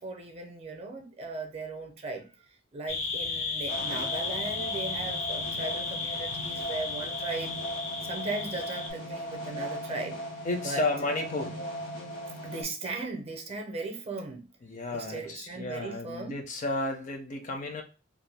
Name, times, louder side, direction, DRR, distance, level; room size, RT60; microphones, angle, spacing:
voice 1, 0.0-2.5 2.7-7.6 8.0-10.2 10.6-10.8 12.4-14.5 14.9-16.4, right 2 dB, 30° right, 0.5 m, -37 dB
sound 1, 2.9-8.9, left 4 dB, 85° left, 0.6 m, -34 dB
sound 2, 3.7-12.6, equal, 70° left, 0.9 m, -38 dB
voice 2, 10.4-11.6 14.6-17.8, left 2 dB, 40° left, 0.5 m, -32 dB
2.5 x 2.2 x 3.3 m
head